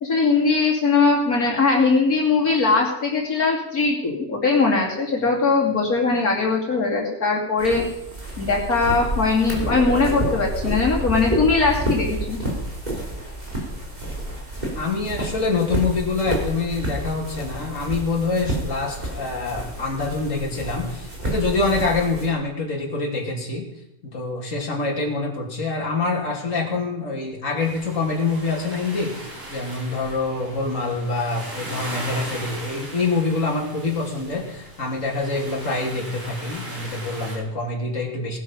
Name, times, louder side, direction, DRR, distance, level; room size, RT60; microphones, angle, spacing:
voice 1, 0.0-7.8 8.4-12.4, left 4 dB, 70° left, -2 dB, 3.2 m, -20 dB
sound 1, 7.6-22.3, right 1 dB, 25° right, 3.7 m, -29 dB
voice 2, 14.7-23.6 24.0-38.4, left 3 dB, 55° left, -2 dB, 3.2 m, -25 dB
sound 2, 27.6-37.4, right 1 dB, 55° right, 5.0 m, -38 dB
18.0 x 12.0 x 5.5 m, 0.84 s
omnidirectional pair, 1.6 m